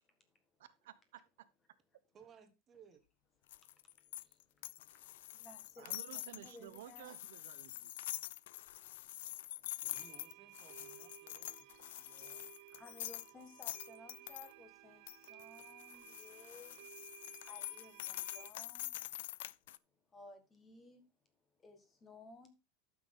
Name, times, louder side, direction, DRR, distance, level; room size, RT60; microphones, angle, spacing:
voice 1, 0.8-1.5 5.8-7.9, right 12 dB, 90° right, 0.9 m, -53 dB
voice 2, 2.1-3.0 9.8-12.5 12.8-12.9, right 7 dB, 20° right, 1.4 m, -62 dB
sound 1, 3.5-14.5 15.1-19.8, left 15 dB, 80° left, 0.4 m, -46 dB
voice 3, 3.5-7.2 7.8-7.9 8.8-9.9 12.7-16.8 17.4-19.0 20.1-21.1 21.6-22.5, left 2 dB, 15° left, 1.7 m, -58 dB
sound 2, 9.9-18.5, right 19 dB, 55° right, 0.7 m, -58 dB
12.0 x 6.1 x 3.7 m
supercardioid pair, 165°, 0 cm